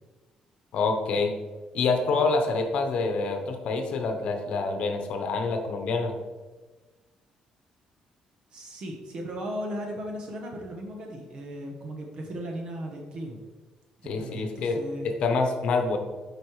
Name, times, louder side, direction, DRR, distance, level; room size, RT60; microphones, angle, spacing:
voice 1, 0.7-1.4 1.7-6.1 14.0-16.0, left 4 dB, 60° left, 5 dB, 0.9 m, -26 dB
voice 2, 8.5-13.4 14.0-15.1, equal, 50° right, 1 dB, 1.0 m, -36 dB
8.1 x 4.9 x 3.1 m, 1.3 s
cardioid pair, 150°, 2 cm